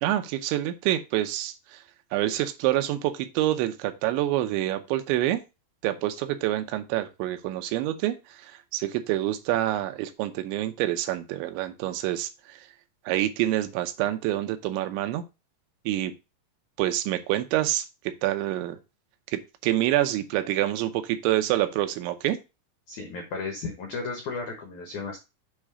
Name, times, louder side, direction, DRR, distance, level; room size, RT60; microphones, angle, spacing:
voice 1, 0.0-1.5 2.1-5.4 5.8-8.2 8.7-12.3 13.1-15.2 15.9-16.1 16.8-17.8 18.2-18.8 19.3-22.4, right 14 dB, 85° right, 8 dB, 3.0 m, -26 dB
voice 2, 22.9-25.2, left 4 dB, 85° left, 2 dB, 1.7 m, -34 dB
7.5 x 3.3 x 4.8 m, 0.27 s
omnidirectional pair, 5.3 m